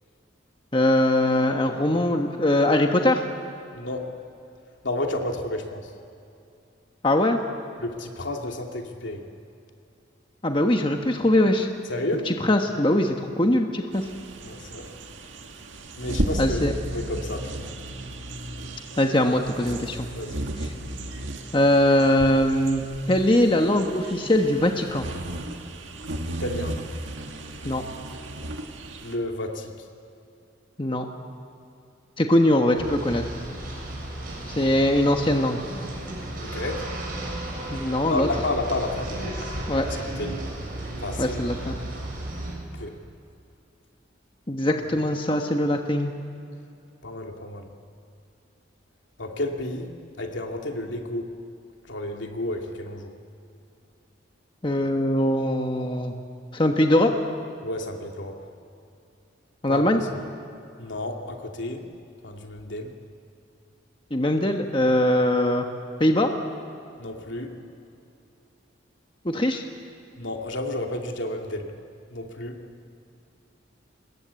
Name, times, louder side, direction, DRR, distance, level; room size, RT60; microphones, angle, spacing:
voice 1, 0.7-3.2 7.0-7.4 10.4-11.7 12.3-14.1 16.4-16.7 19.0-20.1 21.5-25.1 27.6-27.8 30.8-31.1 32.2-33.2 34.6-35.6 37.7-38.3 39.7-39.9 41.2-41.8 44.5-46.1 54.6-56.1 56.5-57.1 59.6-60.0 64.1-65.7 66.0-66.3 69.2-69.6, left 1 dB, 25° left, 4 dB, 1.2 m, -21 dB
voice 2, 3.7-4.1 4.8-5.9 7.8-9.3 11.9-12.3 14.4-14.9 16.0-16.6 16.9-17.7 20.1-20.4 26.3-26.8 29.0-29.7 36.4-36.8 38.0-39.4 40.0-40.4 41.0-41.4 42.7-43.0 47.0-47.7 49.2-49.9 50.2-51.3 51.9-53.1 57.6-58.4 59.7-59.9 60.8-61.9 62.2-62.9 67.0-67.5 70.2-71.7 72.1-72.6, left 1 dB, 75° left, 2 dB, 2.7 m, -31 dB
sound 1, 13.9-29.2, right 1 dB, 80° right, 1.9 m, -34 dB
sound 2, 32.7-42.5, right 1 dB, 50° right, 7.2 m, -34 dB
26.0 x 21.5 x 8.3 m, 2.6 s
head